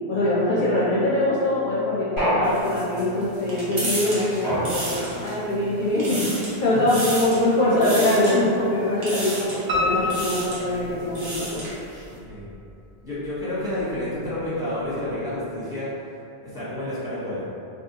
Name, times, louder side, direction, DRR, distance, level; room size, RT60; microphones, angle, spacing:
voice 1, 0.1-11.6 11.9-12.0, left 1 dB, 60° left, -8 dB, 0.6 m, -23 dB
sound 1, 2.2-3.2 4.4-5.3, equal, 90° right, 1.7 m, -26 dB
sound 2, 2.4-5.5 5.8-6.6 6.9-7.4 7.8-8.3 9.0-9.6 10.0-10.6 11.0-11.8, right 1 dB, 75° right, 1.0 m, -32 dB
Piano, 9.7-11.6 12.0-12.9 13.2-13.3 13.8-13.9 14.1-14.2, left 2 dB, 55° right, 0.6 m, -28 dB
voice 2, 12.1-12.5 13.0-15.9 16.4-17.4, left 1 dB, 5° right, -12 dB, 0.9 m, -30 dB
2.6 x 2.5 x 2.7 m, 2.6 s
omnidirectional pair, 1.0 m